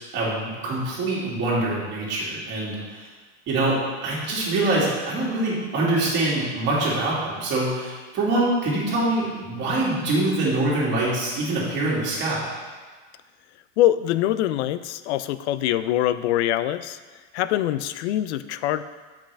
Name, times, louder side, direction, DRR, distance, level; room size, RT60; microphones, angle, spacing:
voice 1, 0.1-3.1 3.5-12.5, right 2 dB, 30° right, -6 dB, 2.3 m, -24 dB
voice 2, 13.8-17.0 17.3-18.8, left 13 dB, 75° left, 13 dB, 0.5 m, -23 dB
7.6 x 5.8 x 3.4 m, 1.4 s
supercardioid pair, 150°, 34 cm